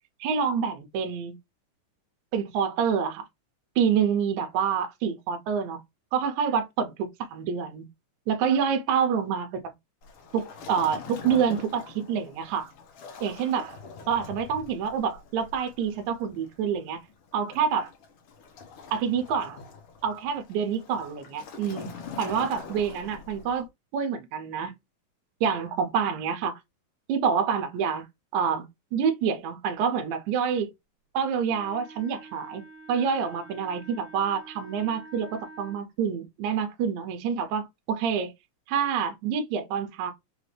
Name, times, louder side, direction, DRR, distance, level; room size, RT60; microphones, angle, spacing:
voice 1, 0.2-1.4 2.3-3.2 3.8-5.8 6.1-7.9 8.3-9.6 10.3-12.7 13.2-13.8 14.1-17.0 17.3-17.9 18.9-19.6 20.0-21.9 22.2-23.7 23.9-24.7 25.4-26.6 27.1-28.1 28.3-28.7 28.9-30.7 31.1-32.6 32.9-38.3 38.7-40.1, right 7 dB, 75° right, 2.0 m, -27 dB
Waves surf, 10.0-23.7, left 5 dB, 75° left, 1.3 m, -44 dB
Wind instrument woodwind instrument, 31.5-35.8, right 2 dB, 45° left, 1.8 m, -48 dB
5.0 x 2.6 x 3.3 m
omnidirectional pair, 3.7 m